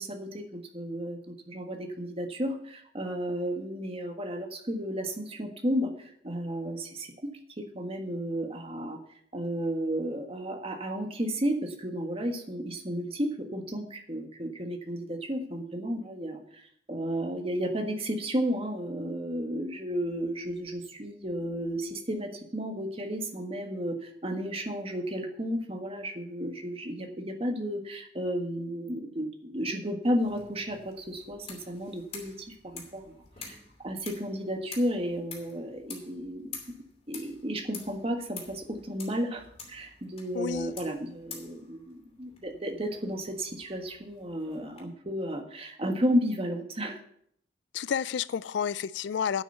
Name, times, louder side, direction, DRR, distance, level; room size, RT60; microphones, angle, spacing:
voice 1, 0.0-7.1 7.6-9.0 9.3-36.6 37.1-47.0, equal, 30° right, 1.6 m, -33 dB
sound 1, 30.2-44.8, left 5 dB, 35° left, 2.8 m, -48 dB
voice 2, 40.3-40.7 47.7-49.4, left 7 dB, 70° left, 0.4 m, -30 dB
9.9 x 6.2 x 8.0 m
head